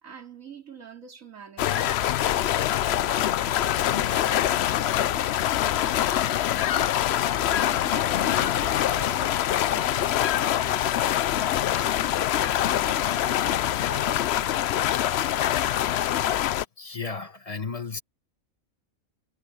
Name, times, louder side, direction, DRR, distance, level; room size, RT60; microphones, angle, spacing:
voice 1, 0.0-14.3, right 6 dB, 70° right, 3.3 m, -45 dB
sound 1, 1.6-16.6, left 12 dB, 65° left, 0.7 m, -24 dB
voice 2, 16.8-18.0, left 4 dB, 25° left, 1.4 m, -34 dB
omnidirectional pair, 1.5 m